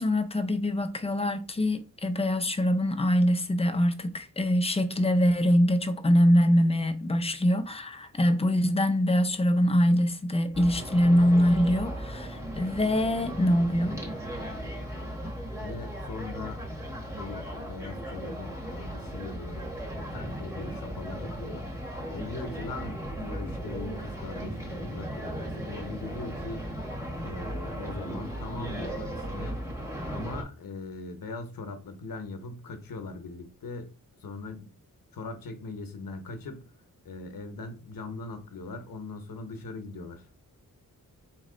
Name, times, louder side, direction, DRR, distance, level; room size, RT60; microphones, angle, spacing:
voice 1, 0.0-14.0, equal, 15° left, 0.5 m, -24 dB
sound 1, 10.5-30.4, equal, 10° right, 1.4 m, -37 dB
voice 2, 15.6-16.6 17.1-21.7 22.1-26.7 27.2-29.6 30.1-34.0 34.2-34.7 35.1-36.7 37.0-40.3, left 3 dB, 75° left, 0.9 m, -40 dB
4.1 x 3.1 x 3.8 m
wide cardioid pair, 125°, 34 cm